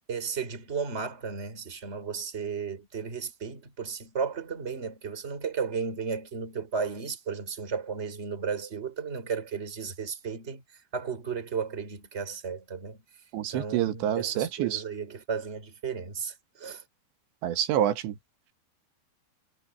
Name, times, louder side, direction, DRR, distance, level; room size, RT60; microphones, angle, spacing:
voice 1, 0.1-10.6 10.9-13.0 13.5-16.8, right 6 dB, 15° right, 3.2 m, -34 dB
voice 2, 13.3-14.8 17.4-18.2, right 11 dB, 85° right, 3.8 m, -27 dB
omnidirectional pair, 5.0 m